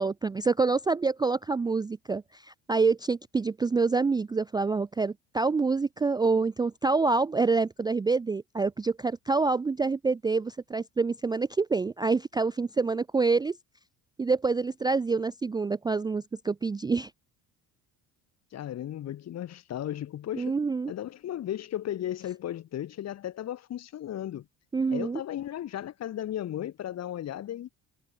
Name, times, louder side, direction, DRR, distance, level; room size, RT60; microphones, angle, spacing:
voice 1, 0.0-13.6 14.2-17.1 20.3-20.9 24.7-25.2, right 4 dB, 10° right, 0.4 m, -27 dB
voice 2, 18.5-20.5 20.9-24.4 24.9-27.7, left 11 dB, 45° left, 1.4 m, -35 dB
cardioid pair, 110°, 35 cm